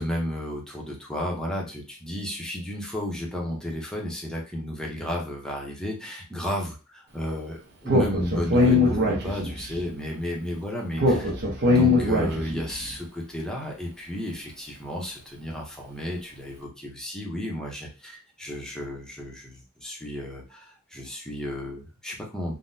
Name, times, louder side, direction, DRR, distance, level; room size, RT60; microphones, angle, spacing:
voice 1, 0.0-6.7 7.1-11.3 11.7-22.6, equal, 5° left, -1 dB, 0.7 m, -33 dB
Speech, 7.9-9.7 11.0-12.7, left 2 dB, 50° right, 0.8 m, -21 dB
3.7 x 2.1 x 2.6 m, 0.33 s
head